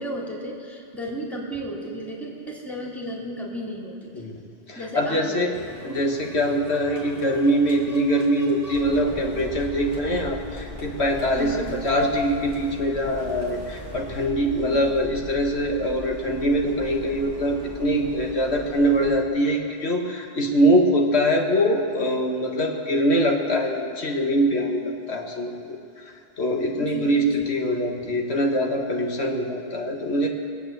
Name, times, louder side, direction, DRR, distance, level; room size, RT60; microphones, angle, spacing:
voice 1, 0.0-4.1 4.8-5.8 11.3-11.6 26.8-27.5, equal, ahead, -3 dB, 2.3 m, -34 dB
voice 2, 4.1-5.5 5.8-30.3, equal, 65° left, 1 dB, 1.7 m, -23 dB
sound 1, 5.5-14.3, left 1 dB, 90° left, 3.1 m, -44 dB
sound 2, 8.7-19.2, equal, 30° left, 2.3 m, -39 dB
22.0 x 8.4 x 7.8 m, 2.4 s
omnidirectional pair, 1.2 m